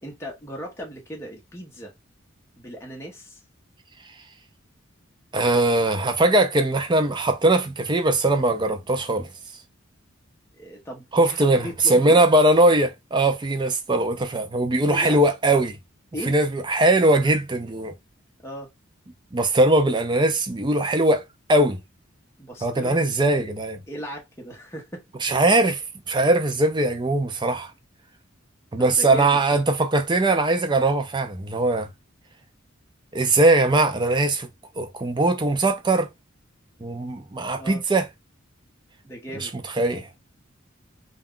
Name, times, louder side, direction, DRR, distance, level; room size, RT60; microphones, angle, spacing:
voice 1, 0.0-1.9 2.6-3.4 10.5-12.2 14.8-15.3 16.1-16.4 18.4-18.7 22.4-23.5 23.9-25.0 28.8-29.6 37.5-37.8 39.0-39.5, equal, 15° left, 0.8 m, -37 dB
voice 2, 5.3-9.3 11.1-15.8 16.3-17.9 19.3-21.2 21.5-21.8 22.6-23.8 25.2-25.8 26.1-27.7 28.7-31.9 33.1-34.5 34.8-36.1 36.8-38.1 39.4-39.5 39.8-40.1, right 2 dB, 25° right, 0.5 m, -20 dB
2.4 x 2.3 x 3.6 m
head